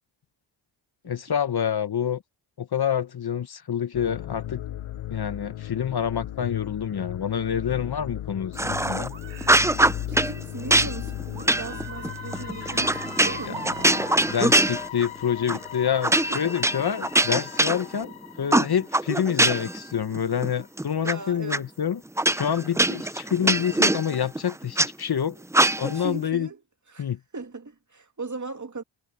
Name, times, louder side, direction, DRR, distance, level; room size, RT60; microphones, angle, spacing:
voice 1, 1.0-2.2 2.6-4.6 5.1-9.1 13.5-22.0 22.3-25.4 25.8-26.5 27.0-27.2, left 8 dB, 50° left, 1.1 m, -27 dB
sound 1, 3.9-20.7 21.0-21.1 21.6-21.7, left 13 dB, 75° left, 0.9 m, -37 dB
sound 2, 8.6-9.1 9.4-10.3 10.7-15.2 15.5-15.7 16.0-18.1 18.5-19.8 20.1-21.1 21.5-21.6 22.2-24.9 25.5-26.1, right 1 dB, 5° right, 0.5 m, -22 dB
sound 3, 9.1-9.6 11.4-14.5, right 6 dB, 65° right, 6.0 m, -40 dB
voice 2, 10.1-13.7 16.2-16.4 20.9-21.7 25.9-26.6 26.9-28.8, right 3 dB, 35° right, 2.6 m, -38 dB
cardioid pair, 50°, 48 cm